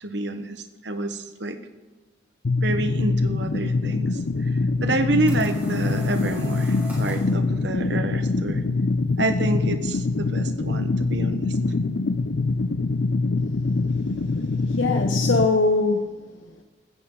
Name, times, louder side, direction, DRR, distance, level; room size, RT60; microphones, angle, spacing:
voice 1, 0.0-1.6 2.6-4.1 4.8-8.6 9.2-11.5, right 2 dB, 65° right, 8 dB, 1.3 m, -28 dB
sound 1, 2.4-15.4, left 3 dB, 60° left, 0.5 m, -24 dB
sound 2, 4.8-7.4, right 1 dB, 10° right, 4.4 m, -42 dB
voice 2, 14.7-16.6, left 3 dB, 80° left, 4 dB, 1.0 m, -23 dB
16.0 x 13.5 x 3.9 m, 1.2 s
head